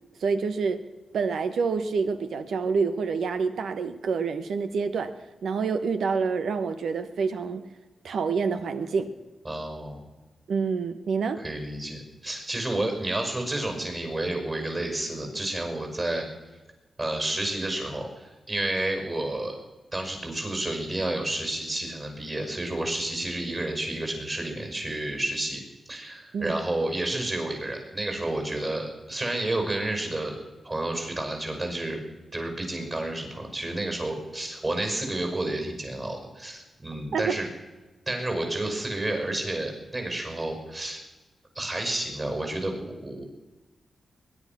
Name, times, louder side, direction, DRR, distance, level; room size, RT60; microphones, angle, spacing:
voice 1, 0.2-0.8 1.1-5.1 5.4-7.6 8.0-9.1 10.5-11.4 26.3-26.6 37.1-37.4, right 5 dB, 85° right, 11 dB, 1.2 m, -27 dB
voice 2, 9.4-10.1 11.4-16.3 17.0-19.6 19.9-25.6 25.9-30.3 30.6-32.0 32.3-37.5 38.1-41.0 41.6-43.2, right 1 dB, 30° right, 4 dB, 5.7 m, -30 dB
21.5 x 10.5 x 6.1 m, 1.2 s
cardioid pair, 80°, 0 cm